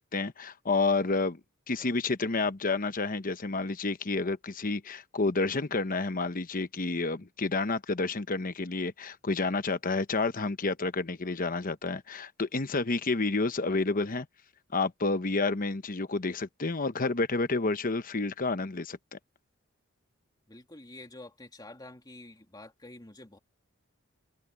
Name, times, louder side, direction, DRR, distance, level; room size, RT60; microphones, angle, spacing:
voice 1, 0.0-1.4 1.7-14.3 14.7-19.2, left 3 dB, 40° left, 1.0 m, -30 dB
voice 2, 20.5-23.4, left 2 dB, 20° left, 2.7 m, -48 dB
head